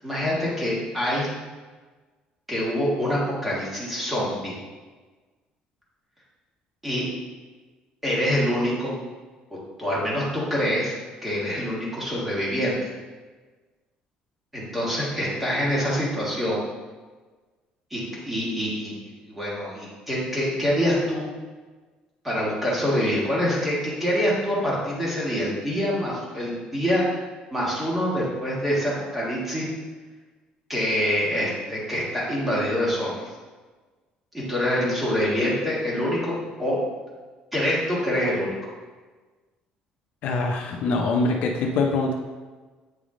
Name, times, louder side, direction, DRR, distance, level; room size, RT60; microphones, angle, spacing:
voice 1, 0.0-1.3 2.5-4.6 6.8-7.0 8.0-8.9 9.8-10.9 11.2-12.9 14.5-16.6 17.9-18.9 19.3-21.3 22.2-27.2 27.5-29.7 30.7-33.2 34.3-36.3 36.6-36.8 37.5-38.6, equal, 5° right, -6 dB, 1.5 m, -25 dB
voice 2, 40.2-42.1, left 3 dB, 60° left, 2 dB, 0.6 m, -24 dB
8.0 x 3.5 x 3.7 m, 1.3 s
cardioid pair, 170°, 3 cm